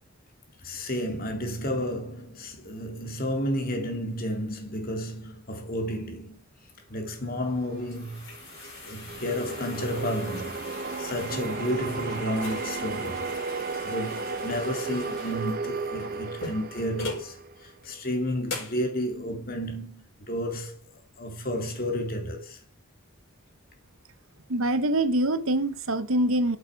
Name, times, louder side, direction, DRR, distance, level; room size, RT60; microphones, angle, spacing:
voice 1, 0.6-6.4 6.9-8.3 8.8-13.2 13.5-17.4 17.6-20.8 21.2-22.6, equal, 40° left, 2.6 m, -32 dB
sound 1, 7.5-17.3 17.8-17.9 18.5-18.8, left 3 dB, 55° left, 5.2 m, -41 dB
sound 2, 7.6-18.0, right 4 dB, 40° right, 0.8 m, -35 dB
voice 2, 24.5-26.6, right 1 dB, 70° right, 1.0 m, -24 dB
11.0 x 8.8 x 4.6 m
head